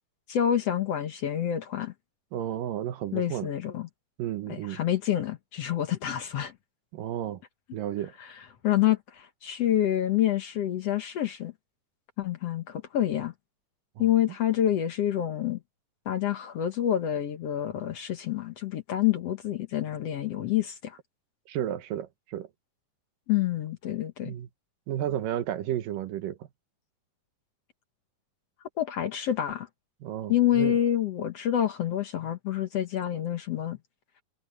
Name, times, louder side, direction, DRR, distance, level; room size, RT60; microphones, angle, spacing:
voice 1, 0.3-1.9 3.1-3.9 4.5-6.5 8.2-8.3 8.6-11.5 12.2-13.3 14.0-15.6 16.1-21.0 23.3-24.3 28.8-29.7 30.3-33.8, left 11 dB, 60° left, 1.9 m, -27 dB
voice 2, 2.3-3.5 4.2-4.8 6.9-7.4 7.7-8.1 14.0-14.1 21.5-22.5 24.2-24.5 24.9-26.5 30.0-30.8, right 11 dB, 85° right, 2.9 m, -32 dB
omnidirectional pair, 3.8 m